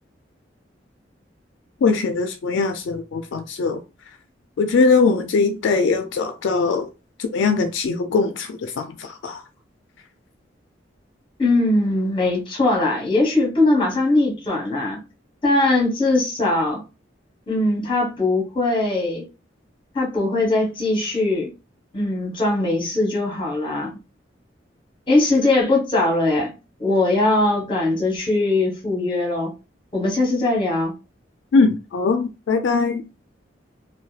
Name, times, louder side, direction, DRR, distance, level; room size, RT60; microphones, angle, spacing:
voice 1, 1.8-3.8 4.6-6.9 7.2-9.4 31.5-33.0, left 4 dB, 75° left, 0.3 m, -21 dB
voice 2, 11.4-15.0 15.4-16.8 17.5-19.2 19.9-21.5 21.9-23.9 25.1-26.5 26.8-29.5 29.9-30.9, left 2 dB, 30° left, 1.0 m, -20 dB
2.7 x 2.2 x 2.3 m
head